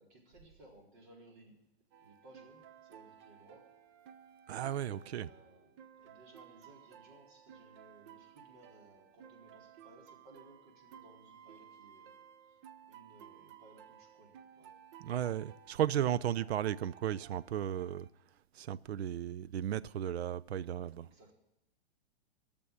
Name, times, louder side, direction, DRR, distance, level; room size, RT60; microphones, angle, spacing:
voice 1, 0.0-1.6 2.0-3.7 4.5-12.6 12.9-14.8 21.0-21.3, right 2 dB, 50° right, 4.3 m, -60 dB
sound 1, 1.9-18.1, right 9 dB, 30° right, 0.4 m, -57 dB
voice 2, 4.5-5.3 15.0-18.1 18.6-21.1, right 10 dB, 80° right, 0.6 m, -35 dB
12.5 x 7.1 x 10.0 m
hypercardioid pair, 145°, 32 cm